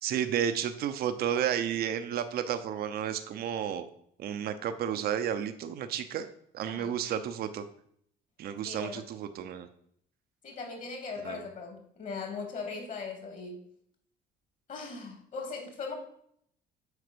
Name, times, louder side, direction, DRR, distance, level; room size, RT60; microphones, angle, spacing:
voice 1, 0.0-3.9 4.2-6.3 6.5-7.6 8.4-9.7 11.2-11.5, right 9 dB, 65° right, 9 dB, 0.8 m, -32 dB
voice 2, 6.6-7.0 8.6-9.1 10.4-13.6 14.7-15.9, left 4 dB, 50° left, 3 dB, 3.2 m, -39 dB
8.1 x 5.0 x 6.8 m, 0.67 s
cardioid pair, 110°, 17 cm